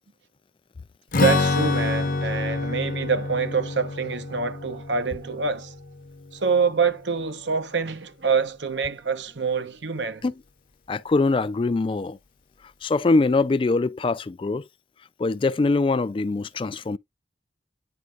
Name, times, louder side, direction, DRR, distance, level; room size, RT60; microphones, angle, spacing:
Strum, 1.1-6.7, left 3 dB, 50° left, 0.7 m, -27 dB
voice 1, 1.1-5.8 6.3-10.2, right 5 dB, 90° right, 1.0 m, -26 dB
voice 2, 10.9-12.2 12.8-14.6 15.2-17.0, left 3 dB, 30° left, 0.3 m, -23 dB
9.6 x 4.2 x 2.4 m
head